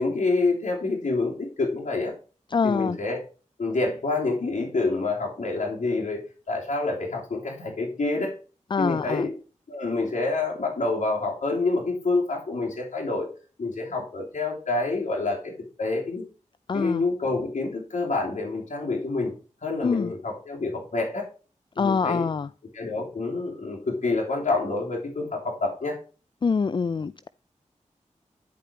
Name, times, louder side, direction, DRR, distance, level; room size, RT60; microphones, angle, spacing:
voice 1, 0.0-2.1 2.6-3.2 3.6-6.2 6.5-8.3 8.8-9.3 9.7-13.3 13.6-15.5 15.8-16.2 16.7-19.3 19.6-21.3 21.8-22.2 22.7-26.0, left 3 dB, 70° left, 3.0 m, -27 dB
voice 2, 2.5-3.0 8.7-9.3 16.7-17.0 19.8-20.1 21.8-22.5 26.4-27.3, left 5 dB, 40° left, 0.3 m, -25 dB
10.5 x 5.0 x 4.4 m
cardioid pair, 45°, 13 cm